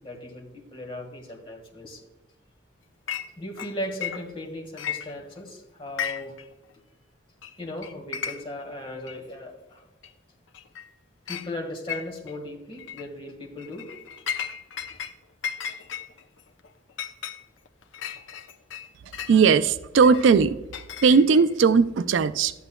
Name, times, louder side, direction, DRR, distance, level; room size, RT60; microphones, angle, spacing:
voice 1, 0.0-2.0 3.4-6.4 7.6-9.8 11.3-13.9, left 1 dB, 30° left, 1 dB, 1.7 m, -37 dB
Chink clink, 3.1-3.3 3.6-4.5 4.8-5.5 5.9-6.4 6.7-6.8 7.4-7.5 7.8-8.6 9.1-9.2 10.0-10.1 10.5-10.9 11.3-11.5 11.9-12.4 12.8-13.1 13.6-15.1 15.4-19.4 20.0-21.5, left 8 dB, 85° left, 0.6 m, -35 dB
voice 2, 19.3-20.5 21.0-22.5, right 5 dB, 85° right, 14 dB, 0.4 m, -18 dB
12.0 x 8.9 x 2.3 m, 1.0 s
head